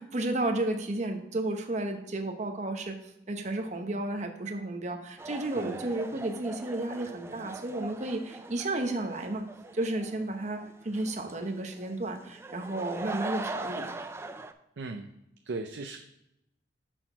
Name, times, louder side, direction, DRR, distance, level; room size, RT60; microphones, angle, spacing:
voice 1, 0.0-3.0 3.3-9.4 9.7-13.9, right 2 dB, 40° right, 4 dB, 0.9 m, -32 dB
sound 1, 5.2-14.5, right 2 dB, 15° right, 0.3 m, -41 dB
voice 2, 14.8-15.1 15.4-16.1, right 3 dB, 75° right, 5 dB, 0.5 m, -37 dB
6.3 x 6.1 x 4.4 m, 0.83 s
head